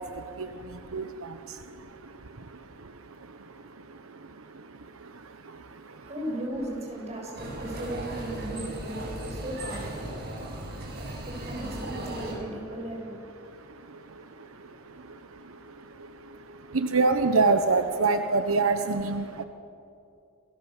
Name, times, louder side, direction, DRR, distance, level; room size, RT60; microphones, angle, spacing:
voice 1, 0.0-6.1 10.3-11.2 13.4-19.4, right 3 dB, 85° right, 8 dB, 1.1 m, -30 dB
voice 2, 5.8-16.5, right 1 dB, 35° right, 0 dB, 7.5 m, -38 dB
sound 1, 7.3-12.3, right 1 dB, 50° right, 7.3 m, -37 dB
29.0 x 21.0 x 7.3 m, 2.6 s
head